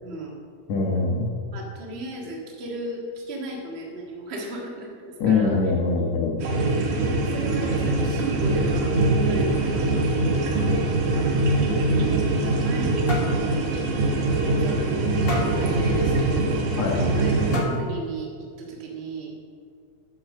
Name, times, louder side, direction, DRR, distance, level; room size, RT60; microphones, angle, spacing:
voice 1, 0.0-0.4 1.5-5.6 7.0-9.0 9.3-10.7 11.0-11.3 12.3-12.9 14.6-18.3 18.6-19.3, right 2 dB, 25° right, -1 dB, 1.5 m, -36 dB
voice 2, 0.7-1.3 5.2-6.4 16.8-17.1, left 4 dB, 65° left, 0 dB, 2.5 m, -23 dB
sound 1, 6.4-17.6, right 2 dB, 85° right, 3.0 m, -23 dB
sound 2, 12.1-12.8 13.1-13.4 13.8-14.0 14.4-14.5 15.3-15.6 16.8-16.9 17.5-18.0, left 1 dB, 45° left, 0.7 m, -31 dB
10.5 x 7.9 x 6.4 m, 2.1 s
omnidirectional pair, 3.5 m